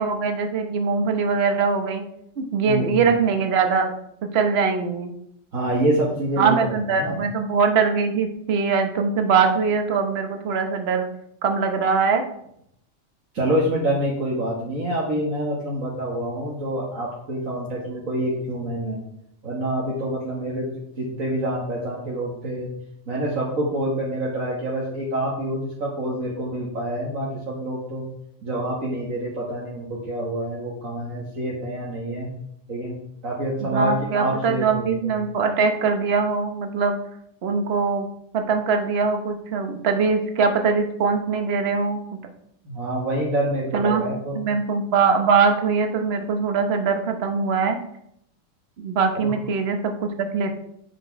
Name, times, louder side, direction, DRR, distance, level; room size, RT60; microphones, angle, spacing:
voice 1, 0.0-2.0 2.4-3.9 4.3-5.1 6.4-11.1 11.4-12.2 33.6-37.0 37.4-38.1 38.3-42.0 43.7-47.8 48.8-50.5, right 5 dB, 55° right, 5 dB, 1.2 m, -22 dB
voice 2, 2.7-3.0 5.5-7.2 13.3-19.0 19.4-22.7 23.1-28.0 28.4-32.3 32.7-33.0 33.2-35.2 42.6-44.4 49.2-49.3, right 1 dB, 85° right, -5 dB, 2.1 m, -27 dB
9.2 x 6.0 x 4.6 m, 0.73 s
omnidirectional pair, 1.4 m